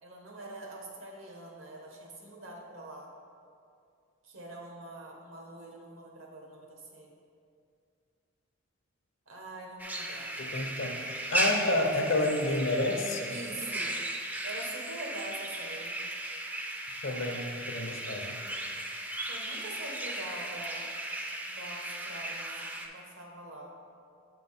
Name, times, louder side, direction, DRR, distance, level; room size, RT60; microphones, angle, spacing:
voice 1, 0.0-3.1 4.2-7.1 9.3-10.3 13.3-14.0 14.4-16.0 19.2-20.9 21.5-23.7, right 2 dB, 80° right, -1 dB, 1.1 m, -44 dB
sound 1, 9.8-22.9, right 1 dB, 10° right, 0.3 m, -36 dB
voice 2, 10.4-13.3 17.0-18.4, left 2 dB, 65° left, 3 dB, 0.7 m, -30 dB
7.1 x 4.6 x 4.2 m, 2.4 s
head